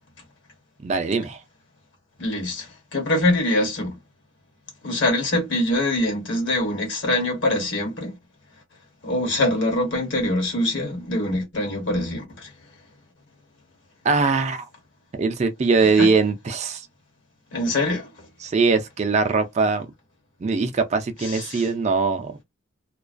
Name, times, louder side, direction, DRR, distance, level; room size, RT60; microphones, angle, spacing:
voice 1, 0.8-1.4 14.0-14.7 15.1-16.9 18.4-19.9 20.4-22.4, right 4 dB, 35° right, 0.3 m, -21 dB
voice 2, 2.2-4.0 4.8-8.2 9.0-12.5 16.0-16.1 17.5-18.1 21.2-21.7, left 1 dB, 60° left, 1.1 m, -24 dB
2.3 x 2.2 x 2.4 m
head